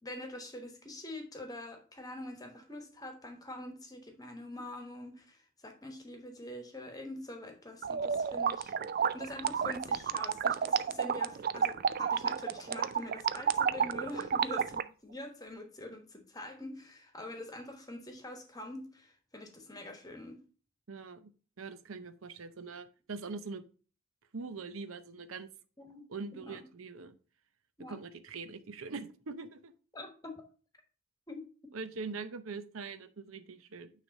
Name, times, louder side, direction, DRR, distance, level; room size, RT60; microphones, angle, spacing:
voice 1, 0.0-20.4 25.8-26.1 26.3-26.7 27.8-28.0 29.9-30.4 31.3-31.5, left 1 dB, 20° left, 1.3 m, -45 dB
sound 1, 7.8-14.8, right 7 dB, 45° right, 0.4 m, -31 dB
voice 2, 20.9-21.3 21.6-23.6 24.3-25.5 26.1-27.2 27.9-29.7 31.7-33.9, right 4 dB, 75° right, 0.7 m, -42 dB
9.1 x 3.3 x 5.3 m
head